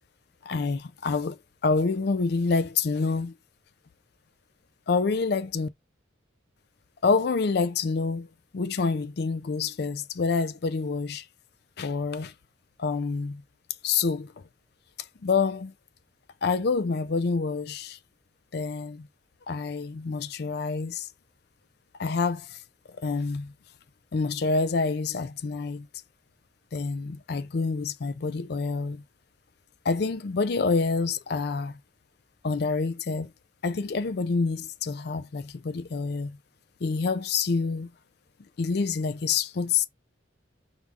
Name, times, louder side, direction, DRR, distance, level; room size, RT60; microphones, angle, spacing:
voice 1, 0.5-1.4 1.6-3.3 4.9-5.7 7.0-8.3 8.5-11.2 11.8-12.3 12.8-13.4 13.8-14.3 15.2-15.7 16.4-18.0 18.5-19.1 19.5-21.1 22.0-22.6 23.0-23.5 24.1-25.9 26.7-29.0 29.8-31.8 32.4-33.3 33.6-36.4 36.8-37.9 38.6-39.9, left 4 dB, 55° left, 0.4 m, -27 dB
4.8 x 2.5 x 3.4 m
head